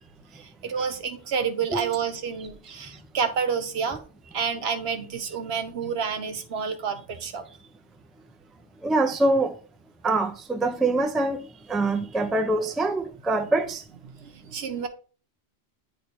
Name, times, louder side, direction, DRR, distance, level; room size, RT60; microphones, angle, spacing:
voice 1, 0.3-4.0 4.3-7.4 14.1-14.9, right 6 dB, 75° right, 1.1 m, -29 dB
voice 2, 8.8-9.5 10.0-11.4 11.7-13.8, right 2 dB, ahead, 0.4 m, -24 dB
9.4 x 3.3 x 4.3 m
omnidirectional pair, 1.1 m